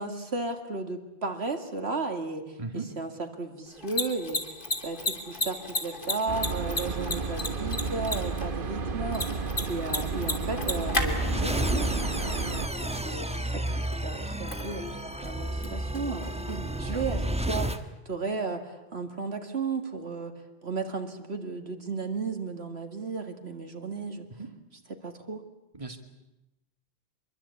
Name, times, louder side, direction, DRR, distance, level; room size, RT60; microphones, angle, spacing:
voice 1, 0.0-9.4 9.6-12.4 12.8-13.7 14.0-17.7 18.1-20.3 20.6-24.3 24.9-25.4, right 3 dB, 75° right, 5 dB, 2.5 m, -34 dB
voice 2, 2.6-2.9 16.7-17.0 24.4-24.5 25.7-26.0, right 3 dB, 30° right, 4 dB, 2.4 m, -37 dB
Mechanisms, 3.7-17.3, left 2 dB, 50° left, 3.2 m, -36 dB
sound 1, 6.3-12.7, right 4 dB, 55° right, 1.3 m, -32 dB
sound 2, 10.5-17.8, right 1 dB, 5° right, 1.2 m, -31 dB
25.5 x 22.5 x 8.6 m, 0.93 s
omnidirectional pair, 1.1 m